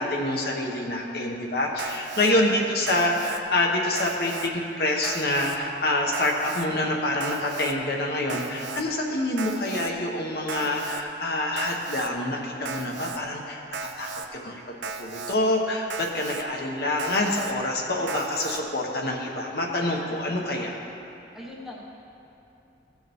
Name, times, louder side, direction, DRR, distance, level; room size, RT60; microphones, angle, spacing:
voice 1, 0.0-20.8, left 1 dB, 60° left, -1 dB, 1.0 m, -27 dB
Alarm, 1.8-2.3 2.9-3.4 4.0-4.5 5.0-5.6 6.1-6.7 7.2-7.7 8.3-8.8 9.4-9.9 10.5-11.0 11.6-12.1 12.7-13.2 13.7-14.3 14.8-15.4 15.9-16.4 17.0-17.5 18.1-18.6, right 5 dB, 75° right, 0.5 m, -35 dB
voice 2, 2.2-3.0 21.3-21.8, left 1 dB, ahead, -4 dB, 1.0 m, -42 dB
16.0 x 6.4 x 3.5 m, 2.9 s
head